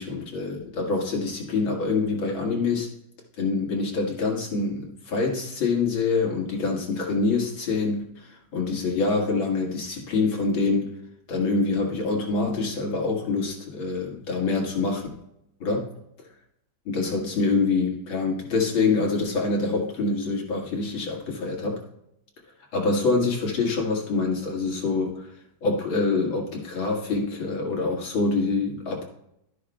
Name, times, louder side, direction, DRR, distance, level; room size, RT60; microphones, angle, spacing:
voice 1, 0.0-2.9 3.4-10.9 11.3-15.1 15.6-15.9 16.9-21.8 22.7-25.3 25.6-29.0, left 3 dB, 80° left, 0 dB, 2.6 m, -25 dB
12.5 x 9.7 x 2.2 m, 0.78 s
omnidirectional pair, 2.2 m